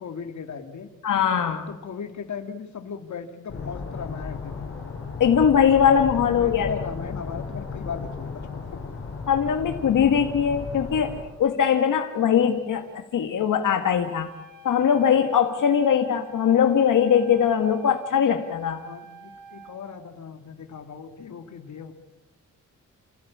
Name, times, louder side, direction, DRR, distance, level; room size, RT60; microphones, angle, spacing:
voice 1, 0.0-0.9 1.7-4.7 6.1-8.9 18.8-21.9, left 6 dB, 65° left, 7 dB, 2.2 m, -37 dB
voice 2, 1.0-1.7 5.2-6.7 9.3-14.3 14.6-18.8, left 8 dB, 85° left, 5 dB, 1.7 m, -21 dB
sound 1, 3.5-11.2, left 4 dB, 45° left, 5.1 m, -35 dB
Wind instrument woodwind instrument, 13.9-19.9, right 2 dB, 80° right, 3.2 m, -48 dB
28.0 x 16.0 x 8.5 m, 0.99 s
wide cardioid pair, 155°, 31 cm